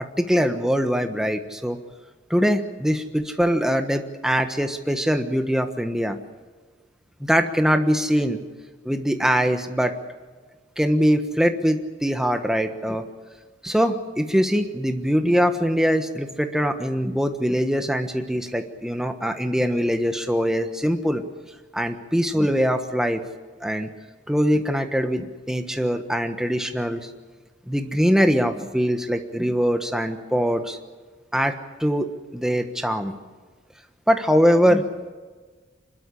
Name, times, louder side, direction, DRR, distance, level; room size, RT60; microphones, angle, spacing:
voice 1, 0.2-1.8 2.3-6.2 7.2-8.4 8.8-9.9 10.8-13.0 13.6-21.2 21.7-23.2 23.6-23.9 24.3-27.1 27.7-30.8 31.3-33.1 34.1-34.8, equal, 5° right, 6 dB, 1.3 m, -22 dB
26.0 x 12.5 x 10.0 m, 1.4 s
head